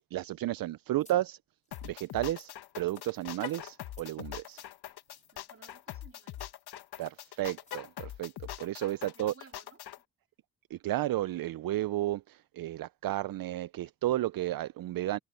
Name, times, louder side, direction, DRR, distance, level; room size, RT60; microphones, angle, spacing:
voice 1, 0.1-1.4 1.8-4.6 7.0-8.3 8.6-9.3 10.7-15.2, right 14 dB, 65° right, 0.5 m, -33 dB
sound 1, 1.0-1.2 1.6-1.9 2.3-2.5 2.9-3.1 3.5-3.6 3.9-4.1 4.4-4.7 5.1-5.3 5.6-5.8 6.3-6.5 7.0-7.1 7.6-7.8, left 2 dB, 20° left, 5.4 m, -60 dB
sound 2, 1.7-10.0, left 12 dB, 85° left, 1.5 m, -43 dB
Car, 3.3-3.8 7.6-8.1, left 9 dB, 60° left, 1.8 m, -43 dB
voice 2, 5.3-6.5 9.0-9.8, right 5 dB, 35° right, 2.4 m, -56 dB
cardioid pair, 60°, 38 cm